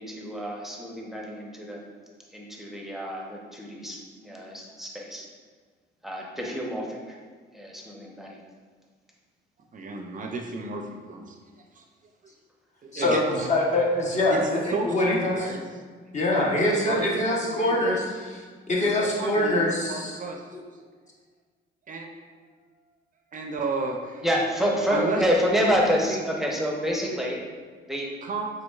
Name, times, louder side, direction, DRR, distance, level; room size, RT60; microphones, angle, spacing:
voice 1, 0.0-1.8 2.3-5.3 6.0-7.2 7.5-8.4 24.2-27.4 27.9-28.1, equal, ahead, -2 dB, 0.7 m, -28 dB
voice 2, 9.7-11.4 11.8-11.9 12.8-13.5 14.3-15.7 16.9-18.0 18.8-20.4 21.9-22.1 23.3-24.2 24.9-25.2 25.5-26.2 28.2-28.5, right 3 dB, 40° right, 3 dB, 0.4 m, -32 dB
voice 3, 12.9-15.4 16.1-20.2 20.5-20.6, left 1 dB, 35° left, -3 dB, 1.0 m, -24 dB
5.1 x 3.8 x 2.3 m, 1.5 s
cardioid pair, 90°, 20 cm